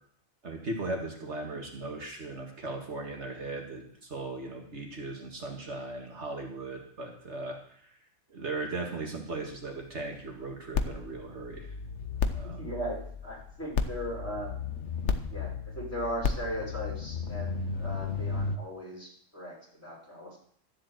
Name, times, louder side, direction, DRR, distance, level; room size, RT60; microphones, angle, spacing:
voice 1, 0.4-7.9 8.3-11.7 12.3-12.6, right 2 dB, 65° right, 0 dB, 2.2 m, -38 dB
sound 1, 10.7-18.6, left 5 dB, 65° left, 1.3 m, -33 dB
voice 2, 12.6-13.0 13.2-14.5 15.3-20.4, equal, 10° left, -5 dB, 5.8 m, -38 dB
13.0 x 7.7 x 7.8 m, 0.63 s
omnidirectional pair, 1.3 m